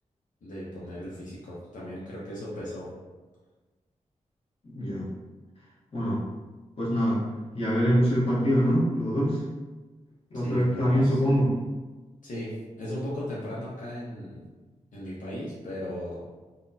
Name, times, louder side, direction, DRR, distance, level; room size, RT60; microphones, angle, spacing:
voice 1, 0.4-2.9 10.3-11.2 12.2-14.4 14.9-16.2, equal, 80° left, -7 dB, 0.7 m, -37 dB
voice 2, 4.6-5.1 5.9-6.2 6.8-7.2 7.5-9.4 10.3-11.5, equal, 50° left, -8 dB, 1.1 m, -24 dB
4.0 x 2.1 x 2.7 m, 1.3 s
wide cardioid pair, 155°, 13 cm